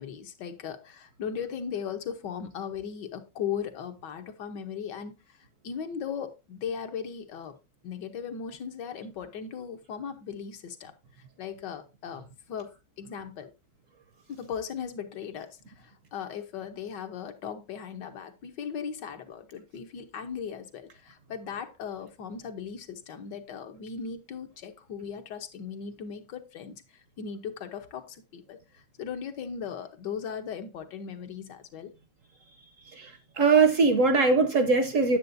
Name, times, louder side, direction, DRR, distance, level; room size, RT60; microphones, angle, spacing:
voice 1, 0.0-5.4 5.6-7.5 7.8-10.9 11.4-12.7 13.0-13.5 14.3-31.9, left 7 dB, 75° left, 1.6 m, -38 dB
voice 2, 33.0-35.2, right 4 dB, 60° right, 0.9 m, -21 dB
9.3 x 7.6 x 2.6 m
omnidirectional pair, 1.9 m